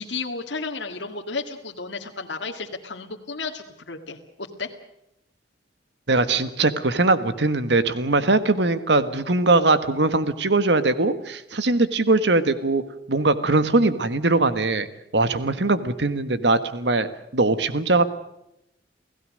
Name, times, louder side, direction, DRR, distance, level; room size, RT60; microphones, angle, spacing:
voice 1, 0.0-4.7, left 4 dB, 75° left, 2 dB, 2.0 m, -33 dB
voice 2, 6.1-12.8 13.1-14.9 15.1-18.0, right 2 dB, 70° right, 12 dB, 1.5 m, -21 dB
29.5 x 17.0 x 6.5 m, 0.85 s
head